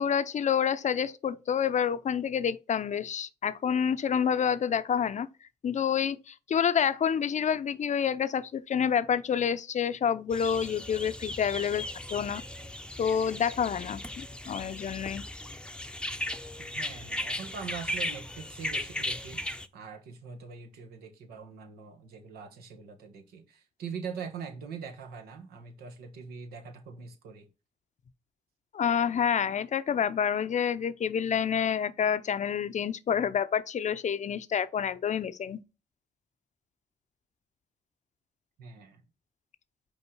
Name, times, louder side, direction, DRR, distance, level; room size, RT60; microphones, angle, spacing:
voice 1, 0.0-5.3 5.6-11.8 12.1-12.4 13.0-15.2 28.7-35.6, left 8 dB, 50° left, 0.6 m, -28 dB
sound 1, 10.3-19.7, left 1 dB, 5° left, 0.7 m, -37 dB
voice 2, 16.6-27.5 38.6-39.0, right 6 dB, 80° right, 1.2 m, -43 dB
5.3 x 4.3 x 4.7 m
supercardioid pair, 50°, 16 cm